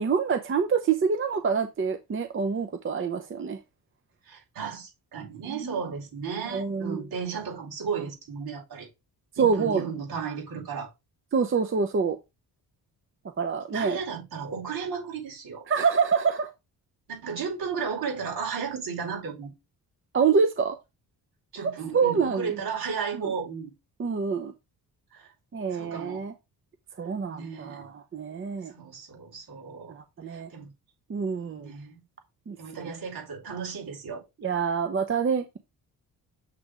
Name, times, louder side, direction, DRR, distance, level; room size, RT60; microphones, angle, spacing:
voice 1, 0.0-3.6 5.5-5.7 6.5-7.0 9.4-9.9 11.3-12.2 13.4-14.0 15.7-16.5 20.1-20.8 21.9-22.5 24.0-24.5 25.5-26.3 27.0-28.7 29.9-30.5 31.1-31.7 32.5-32.9 34.4-35.6, right 5 dB, 30° right, 0.7 m, -26 dB
voice 2, 4.3-8.9 9.4-10.9 13.7-15.7 17.1-19.5 21.5-23.7 25.1-25.3 25.7-26.2 27.3-27.9 28.7-29.9 30.3-30.7 31.5-32.0 32.6-34.2, right 6 dB, 70° right, 4.7 m, -34 dB
7.5 x 3.4 x 4.9 m
cardioid pair, 130°, 39 cm